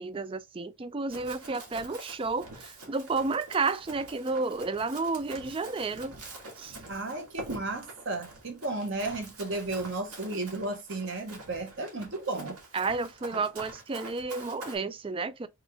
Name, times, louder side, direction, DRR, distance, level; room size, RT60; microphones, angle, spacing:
voice 1, 0.0-6.1 6.6-6.8 12.7-15.5, right 4 dB, 25° right, 0.3 m, -31 dB
Run, 1.1-14.8, right 2 dB, 85° right, 1.8 m, -46 dB
voice 2, 6.9-12.6, right 2 dB, 55° right, 1.1 m, -34 dB
3.7 x 3.4 x 3.4 m
head